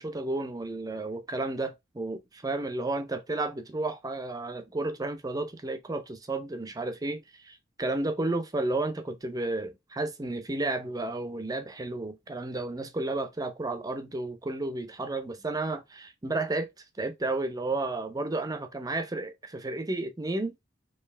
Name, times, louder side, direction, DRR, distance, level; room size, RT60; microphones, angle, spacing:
voice 1, 0.0-16.7 17.0-20.5, right 2 dB, 20° right, 0.5 m, -32 dB
4.6 x 2.8 x 3.3 m
head